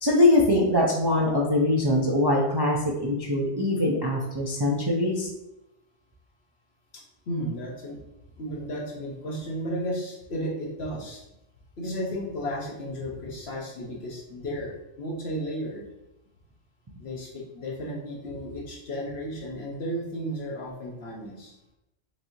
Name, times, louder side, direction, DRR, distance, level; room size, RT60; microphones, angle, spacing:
voice 1, 0.0-5.3, left 1 dB, 35° right, -3 dB, 0.4 m, -23 dB
voice 2, 6.9-8.0 8.4-11.2 11.8-15.8 17.0-21.6, equal, 60° left, -1 dB, 1.1 m, -34 dB
5.9 x 3.0 x 2.6 m, 0.92 s
omnidirectional pair, 1.2 m